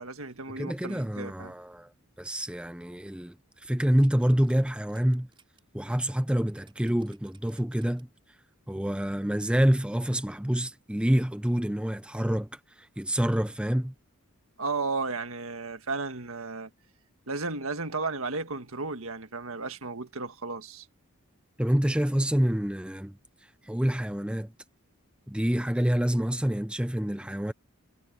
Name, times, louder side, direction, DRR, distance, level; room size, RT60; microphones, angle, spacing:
voice 1, 0.0-1.5 14.6-16.7 17.3-20.9, right 3 dB, 75° right, 1.7 m, -34 dB
voice 2, 0.6-1.9 2.2-5.3 5.7-8.1 8.7-13.9 21.6-23.2 23.6-24.5 25.3-27.5, equal, 5° right, 0.5 m, -27 dB
sound 1, 3.5-5.6 6.0-6.1 6.6-8.2 8.7-8.8, right 4 dB, 25° right, 5.5 m, -61 dB
head